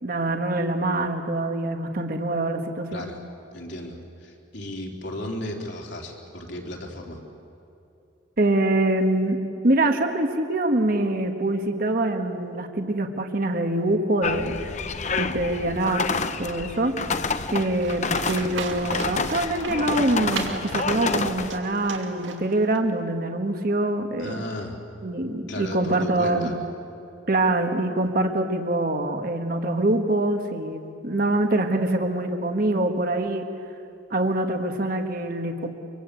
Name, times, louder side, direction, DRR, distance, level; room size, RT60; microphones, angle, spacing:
voice 1, 0.0-3.1 8.4-9.4 9.6-14.6 15.2-16.1 16.4-17.0 17.5-24.4 25.0-26.5 27.3-33.4 34.1-35.8, right 2 dB, 50° right, 5 dB, 1.5 m, -24 dB
voice 2, 3.5-7.2 24.2-24.8 25.5-26.5, left 1 dB, 65° left, 0 dB, 3.8 m, -35 dB
sound 1, 14.2-21.6, left 4 dB, 40° left, 0.9 m, -28 dB
Livestock farm animals working animals, 17.8-22.8, right 4 dB, 85° right, 2.5 m, -36 dB
24.5 x 24.5 x 8.5 m, 2.8 s
head